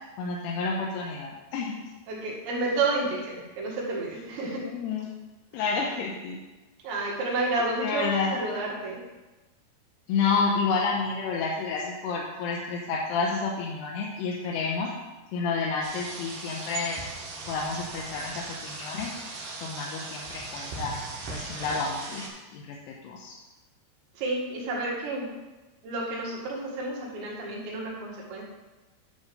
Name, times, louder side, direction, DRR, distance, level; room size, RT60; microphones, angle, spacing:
voice 1, 0.2-1.8 4.6-5.0 5.5-6.4 7.5-8.4 10.1-14.9 15.3-17.0 17.5-19.1 19.6-20.9 21.3-23.3, left 4 dB, 80° left, -2 dB, 2.8 m, -30 dB
voice 2, 2.1-4.6 5.6-5.8 6.8-9.0 24.2-25.3 25.8-28.4, right 2 dB, 85° right, -3 dB, 4.1 m, -30 dB
sound 1, 15.8-22.3, right 3 dB, 60° right, 2.6 m, -38 dB
10.5 x 3.6 x 6.8 m, 1.1 s
omnidirectional pair, 5.0 m